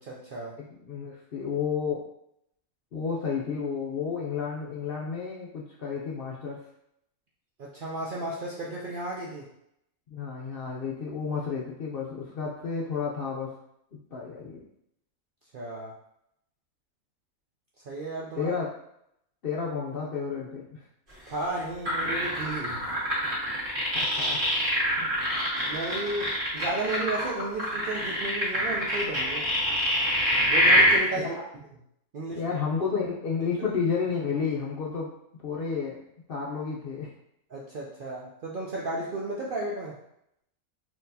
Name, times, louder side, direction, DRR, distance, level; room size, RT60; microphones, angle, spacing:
voice 1, 0.0-0.5 7.6-9.5 15.5-15.9 17.9-18.5 21.3-22.8 25.6-29.5 30.5-31.3 32.1-32.4 37.5-39.9, right 2 dB, 65° right, -4 dB, 0.5 m, -33 dB
voice 2, 0.6-2.0 2.9-6.6 10.1-13.6 13.9-14.6 18.3-18.7 19.4-20.8 23.9-24.5 25.0-25.1 31.2-31.4 32.4-35.1 35.4-36.0 36.3-37.1, left 5 dB, 60° left, -3 dB, 0.6 m, -31 dB
sound 1, 21.9-31.0, equal, 35° right, 1.5 m, -24 dB
4.3 x 2.8 x 2.7 m, 0.76 s
omnidirectional pair, 1.4 m